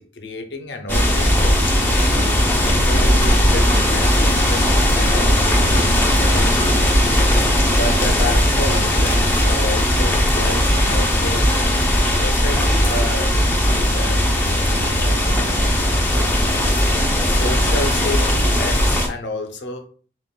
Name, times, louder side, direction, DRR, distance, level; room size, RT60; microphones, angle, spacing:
voice 1, 0.0-1.5 2.6-7.1 7.7-11.5 12.1-16.4 17.2-19.9, left 2 dB, 65° left, 0.7 m, -31 dB
sound 1, 0.9-19.1, equal, 10° left, 0.6 m, -17 dB
7.1 x 2.5 x 2.2 m
head